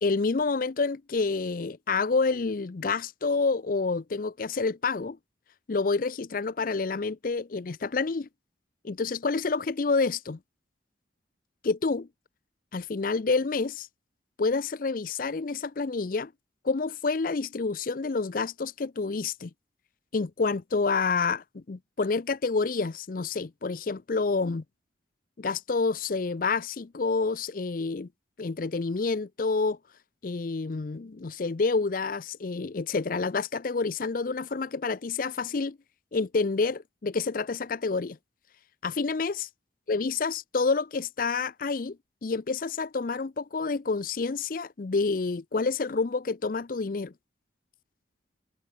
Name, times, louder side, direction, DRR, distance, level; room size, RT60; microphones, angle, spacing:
voice 1, 0.0-5.2 5.7-8.3 8.8-10.4 11.6-12.1 12.7-13.9 14.4-16.3 16.6-19.5 20.1-24.6 25.4-28.1 28.4-29.8 30.2-35.8 36.1-38.2 38.8-39.5 39.9-42.0 42.2-47.1, left 4 dB, 45° left, 0.5 m, -28 dB
head